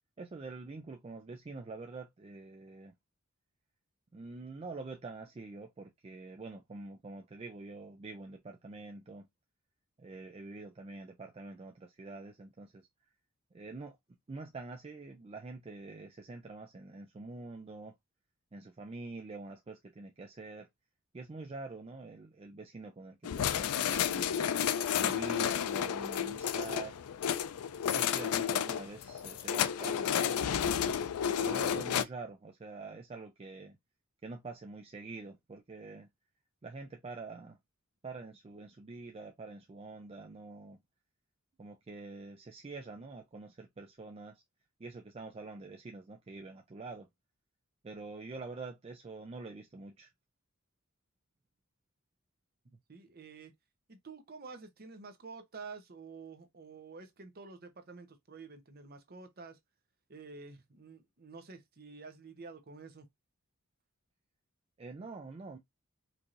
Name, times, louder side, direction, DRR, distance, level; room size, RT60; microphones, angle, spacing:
voice 1, 0.2-2.9 4.1-9.3 10.0-12.9 13.5-14.0 14.3-18.0 18.5-20.7 21.1-24.5 25.0-27.0 27.9-30.8 31.4-33.8 34.2-36.1 36.6-37.6 38.0-40.8 41.6-44.4 44.8-47.1 47.8-50.1 64.8-65.6, right 3 dB, 25° right, 0.4 m, -46 dB
sound 1, 23.2-32.0, left 8 dB, 90° left, 0.4 m, -31 dB
voice 2, 52.9-53.5 53.9-59.6 60.1-63.1, right 4 dB, 45° right, 0.8 m, -49 dB
4.5 x 2.7 x 2.5 m
head